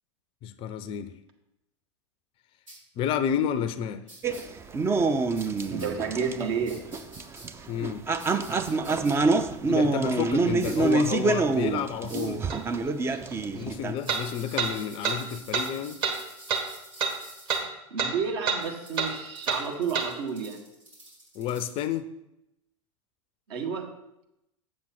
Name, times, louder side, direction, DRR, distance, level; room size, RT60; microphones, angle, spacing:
voice 1, 0.4-1.2 3.0-4.0 7.7-8.0 9.7-12.4 13.5-16.0 21.3-22.1, left 8 dB, 35° left, 13 dB, 0.5 m, -30 dB
sound 1, 2.7-2.8 4.1-4.4 5.4-5.9 6.7-7.5 8.2-9.1 10.6-10.9 12.0-12.4 14.0-17.6 18.6-21.9, right 1 dB, 85° right, 3.4 m, -48 dB
sound 2, 4.2-13.9, right 3 dB, 15° right, 0.5 m, -26 dB
voice 2, 5.7-6.8 17.9-20.6 23.5-23.9, right 6 dB, 55° right, 2 dB, 1.6 m, -31 dB
sound 3, 12.5-12.6 14.1-14.2 14.6-14.7 15.0-15.2 15.5-15.7 16.0-16.2 16.5-16.6 17.0-17.1 17.5-17.6 18.0-18.1 18.5-18.6 19.0-19.1 19.5-19.6 19.9-20.1, right 5 dB, 30° right, 1.4 m, -27 dB
7.4 x 7.4 x 4.4 m, 0.85 s
figure-of-eight pair, 90°, 16 cm